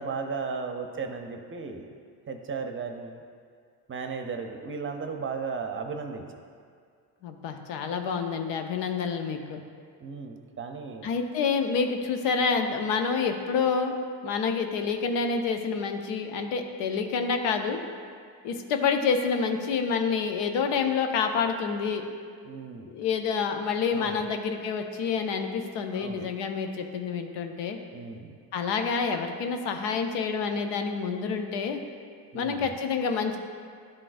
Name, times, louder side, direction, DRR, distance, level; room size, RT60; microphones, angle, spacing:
voice 1, 0.0-1.9 2.3-3.2 3.9-6.2 10.0-11.1 22.5-22.9 23.9-24.2 25.9-26.3 27.9-28.4 32.3-32.8, right 5 dB, 30° right, 5 dB, 0.6 m, -35 dB
voice 2, 7.2-9.6 11.0-17.8 18.4-22.0 22.9-27.8 28.5-31.8 32.3-33.4, left 5 dB, 80° left, 5 dB, 0.7 m, -28 dB
11.0 x 3.8 x 2.5 m, 2.2 s
cardioid pair, 85°, 42 cm